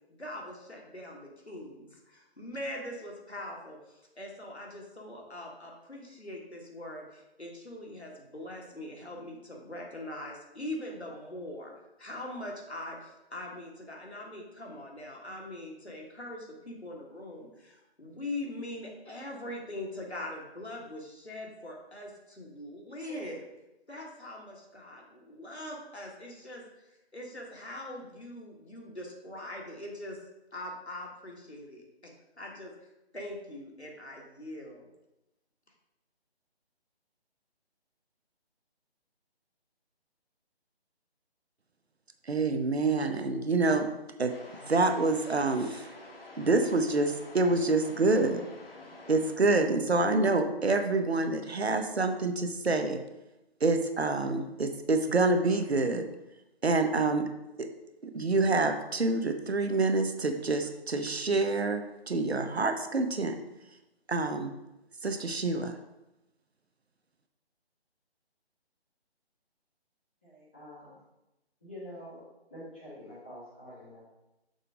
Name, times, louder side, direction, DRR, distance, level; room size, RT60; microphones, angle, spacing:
voice 1, 0.2-11.7 12.0-23.5 23.9-26.7 27.1-30.2 30.5-32.7 33.1-34.9, left 1 dB, 85° left, -1 dB, 1.8 m, -42 dB
voice 2, 42.3-43.9 44.2-44.3 44.7-45.9 46.4-48.4 49.1-53.0 53.6-56.0 56.6-57.2 57.6-57.7 58.0-63.4 64.1-64.5 65.0-65.7, right 3 dB, 75° right, 7 dB, 0.8 m, -27 dB
sound 1, 44.3-49.4, left 2 dB, 60° left, 1.1 m, -48 dB
voice 3, 70.2-70.9 71.6-72.2 72.5-74.0, left 1 dB, 10° left, -10 dB, 0.7 m, -46 dB
6.5 x 3.9 x 4.9 m, 0.94 s
figure-of-eight pair, 150°, 32 cm